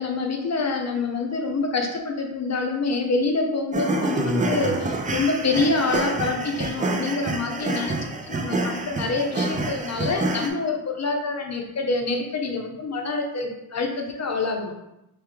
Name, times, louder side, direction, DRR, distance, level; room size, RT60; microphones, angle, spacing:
voice 1, 0.0-8.0 8.3-14.7, left 3 dB, 45° left, 2 dB, 0.7 m, -26 dB
sound 1, 3.7-10.5, right 2 dB, 20° right, 0.4 m, -27 dB
3.5 x 3.3 x 3.1 m, 0.87 s
wide cardioid pair, 160°, 37 cm